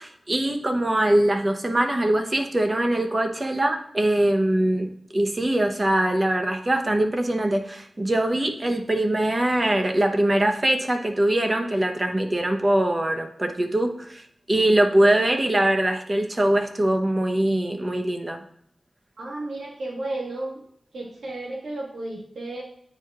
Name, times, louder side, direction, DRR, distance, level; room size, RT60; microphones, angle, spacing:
voice 1, 0.0-14.2 14.5-18.4, right 1 dB, 35° right, 4 dB, 0.9 m, -22 dB
voice 2, 14.7-15.2 19.2-20.6 20.9-22.6, right 2 dB, 85° right, -3 dB, 1.7 m, -33 dB
9.4 x 4.7 x 2.4 m, 0.71 s
cardioid pair, 55°, 0 cm